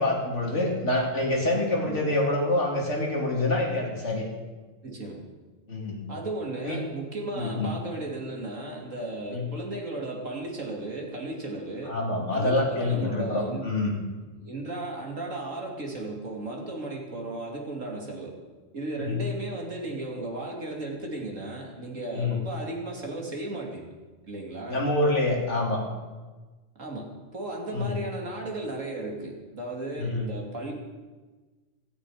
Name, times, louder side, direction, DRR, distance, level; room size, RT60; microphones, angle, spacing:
voice 1, 0.0-4.3 5.7-6.1 6.6-6.8 7.4-7.7 9.3-9.5 11.8-13.9 19.0-19.2 22.1-22.4 24.7-25.8 27.7-28.0 30.0-30.2, left 2 dB, 65° left, -1 dB, 3.0 m, -26 dB
voice 2, 4.8-5.2 6.1-12.0 12.3-13.7 14.4-18.4 18.7-23.9 24.3-24.8 26.7-30.7, right 2 dB, 80° right, 0 dB, 3.2 m, -35 dB
16.5 x 15.0 x 5.0 m, 1.3 s
omnidirectional pair, 1.3 m